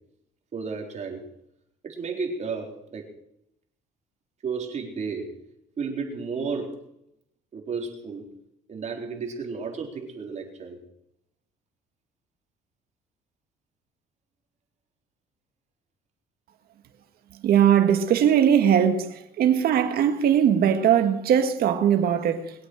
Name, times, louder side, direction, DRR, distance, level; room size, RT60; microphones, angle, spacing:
voice 1, 0.5-1.3 1.8-3.1 4.4-5.4 5.8-6.8 7.5-8.3 8.7-10.8, right 5 dB, 45° right, 4.0 m, -32 dB
voice 2, 17.4-22.5, right 9 dB, 65° right, 1.8 m, -20 dB
22.0 x 8.4 x 6.4 m
cardioid pair, 110°, 17 cm